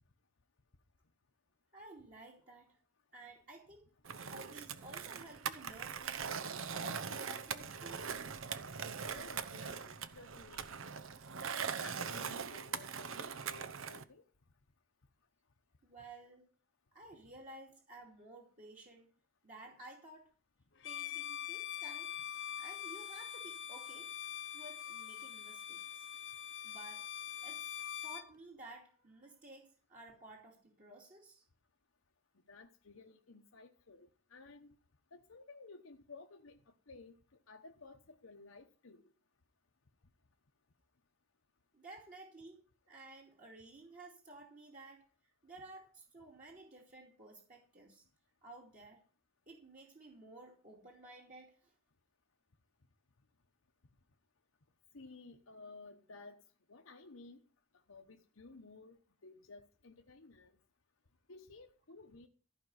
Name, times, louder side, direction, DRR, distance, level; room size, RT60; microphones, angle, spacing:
voice 1, 1.7-2.8 3.1-3.9 4.3-8.1 15.8-16.5 16.9-19.1 19.4-20.3 20.8-22.1 22.6-24.1 24.5-26.1 26.6-27.0 27.4-27.7 28.0-31.4 41.7-45.0 45.4-48.0 48.4-49.0 49.5-51.7, right 2 dB, 40° right, 2.7 m, -54 dB
Skateboard, 4.1-14.0, right 6 dB, 75° right, 0.9 m, -41 dB
voice 2, 9.1-10.7 11.4-14.2 32.5-34.7 35.1-37.2 37.5-39.0 54.9-56.4 56.7-57.4 57.9-60.5 61.3-62.3, left 3 dB, 85° left, 1.0 m, -55 dB
Bowed string instrument, 20.8-28.3, left 10 dB, 60° left, 0.8 m, -44 dB
15.0 x 5.3 x 9.5 m
head